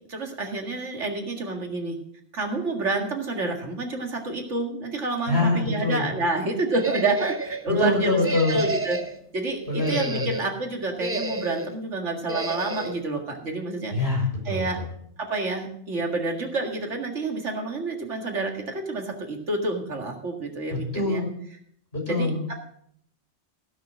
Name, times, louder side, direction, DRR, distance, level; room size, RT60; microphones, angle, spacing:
voice 1, 0.1-2.0 2.3-9.0 9.3-13.9 14.5-14.8 15.2-21.2 22.1-22.5, right 2 dB, 90° right, 2 dB, 2.3 m, -28 dB
voice 2, 5.3-6.1 7.7-8.6 9.7-10.2 13.9-14.9 20.9-21.3 21.9-22.6, left 2 dB, 60° left, -2 dB, 5.9 m, -25 dB
sound 1, 6.7-7.6 8.2-9.2 9.6-10.5 11.0-11.7 12.3-13.0, right 2 dB, 15° right, 0.6 m, -31 dB
16.0 x 6.6 x 6.3 m, 0.67 s
omnidirectional pair, 1.2 m